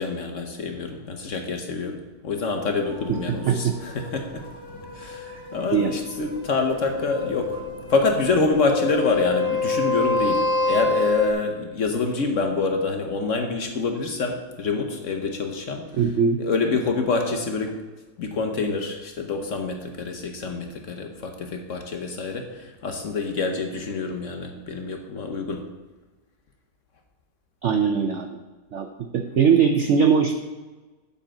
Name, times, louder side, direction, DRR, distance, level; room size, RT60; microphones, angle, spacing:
voice 1, 0.0-4.5 4.9-7.6 7.9-16.0 16.4-17.8 18.2-25.7, left 3 dB, 55° left, 4 dB, 1.0 m, -26 dB
sound 1, 2.9-11.3, left 3 dB, 30° left, 1.7 m, -28 dB
voice 2, 16.0-16.4 27.6-28.4 28.7-28.9 29.1-30.3, right 6 dB, 75° right, 5 dB, 0.6 m, -20 dB
7.2 x 5.5 x 7.3 m, 1.3 s
omnidirectional pair, 1.9 m